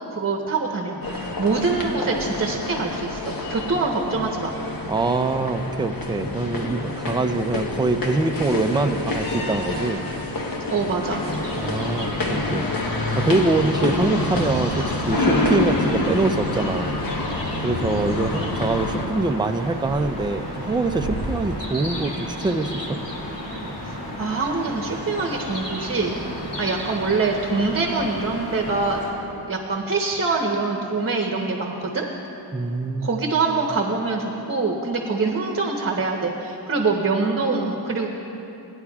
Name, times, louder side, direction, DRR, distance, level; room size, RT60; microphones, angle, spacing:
voice 1, 0.1-4.5 10.7-11.2 23.8-26.1 26.6-29.0 29.5-32.1 33.0-38.1, right 4 dB, 35° right, 1 dB, 1.0 m, -24 dB
sound 1, 1.0-19.0, left 2 dB, 55° left, 1.2 m, -27 dB
voice 2, 4.9-10.1 11.6-12.7 13.2-17.0 17.6-23.0 32.5-33.1, right 3 dB, 10° right, 6 dB, 0.4 m, -24 dB
sound 2, 11.0-29.1, equal, 90° left, 2.5 m, -33 dB
19.0 x 9.8 x 2.4 m, 3.0 s
cardioid pair, 95°, 41 cm